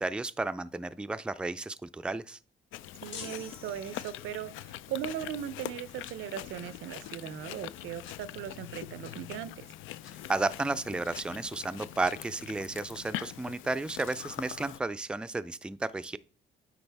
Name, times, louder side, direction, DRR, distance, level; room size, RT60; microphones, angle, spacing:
voice 1, 0.0-2.4 10.3-16.2, right 3 dB, 5° right, 0.3 m, -33 dB
Chewing mastication, 2.7-14.8, left 13 dB, 85° left, 0.4 m, -43 dB
voice 2, 3.0-9.7, right 10 dB, 90° right, 0.6 m, -39 dB
sound 1, 3.1-4.5, left 6 dB, 65° left, 1.5 m, -46 dB
9.5 x 4.0 x 3.4 m
cardioid pair, 90°, 20 cm